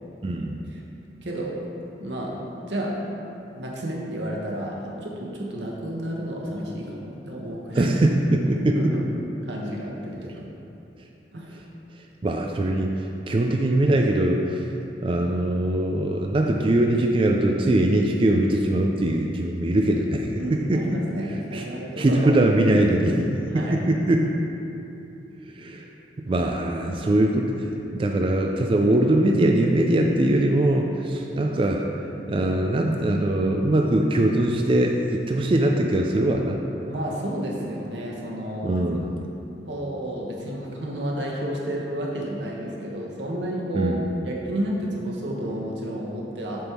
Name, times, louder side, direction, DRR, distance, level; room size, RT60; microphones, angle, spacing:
voice 1, 0.2-0.6 7.7-8.8 12.0-14.6 15.0-20.8 21.3-21.7 22.0-24.3 25.4-25.9 26.2-31.8 32.3-36.6 38.6-39.1 43.7-44.0, right 1 dB, 30° right, 1 dB, 0.3 m, -22 dB
voice 2, 1.2-1.5 2.0-3.0 3.5-7.9 8.6-9.0 9.4-10.4 11.3-11.6 20.4-22.3 23.5-23.8 36.8-38.7 39.2-39.3 39.7-44.0 44.2-46.7, right 1 dB, 85° right, -3 dB, 1.2 m, -31 dB
7.6 x 3.5 x 5.9 m, 2.8 s
head